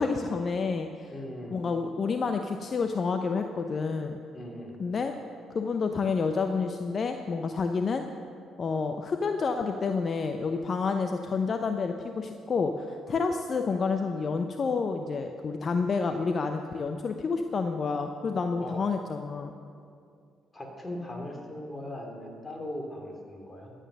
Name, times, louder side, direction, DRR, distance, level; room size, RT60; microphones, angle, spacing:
voice 1, 0.0-1.1 1.5-4.2 4.8-5.1 5.5-8.0 8.6-19.5, left 4 dB, 50° left, 6 dB, 0.7 m, -29 dB
voice 2, 1.1-1.6 4.3-4.8 18.6-18.9 20.5-23.7, left 1 dB, 25° left, 2 dB, 2.9 m, -39 dB
13.0 x 9.2 x 6.5 m, 2.4 s
hypercardioid pair, 50°, 0 cm